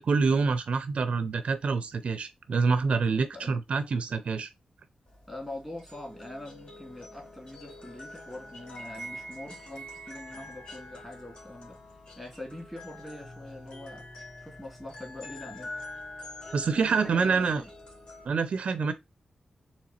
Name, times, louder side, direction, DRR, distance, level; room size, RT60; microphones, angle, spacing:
voice 1, 0.0-4.5 16.5-17.6 18.2-18.9, right 4 dB, 65° right, 0.5 m, -26 dB
sound 1, 5.1-18.3, left 1 dB, 40° left, 1.8 m, -45 dB
voice 2, 5.3-11.8 12.2-14.1 14.4-15.9 16.7-17.7, left 1 dB, 5° left, 2.5 m, -43 dB
4.1 x 3.0 x 4.2 m
wide cardioid pair, 100°, 2 cm